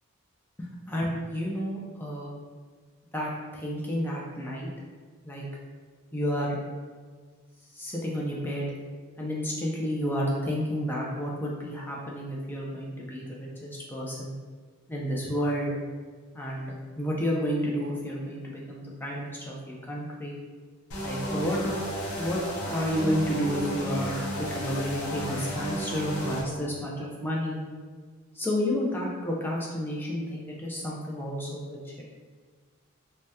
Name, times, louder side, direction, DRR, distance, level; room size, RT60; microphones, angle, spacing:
voice 1, 0.6-2.3 3.1-4.7 5.2-5.4 6.1-6.6 7.7-8.7 9.2-14.3 14.9-15.7 16.3-20.4 21.0-21.8 22.2-27.6 28.4-32.0, equal, 10° left, -4 dB, 0.3 m, -31 dB
sound 1, 20.9-26.4, equal, 80° left, 0.6 m, -33 dB
2.7 x 2.1 x 3.3 m, 1.5 s
head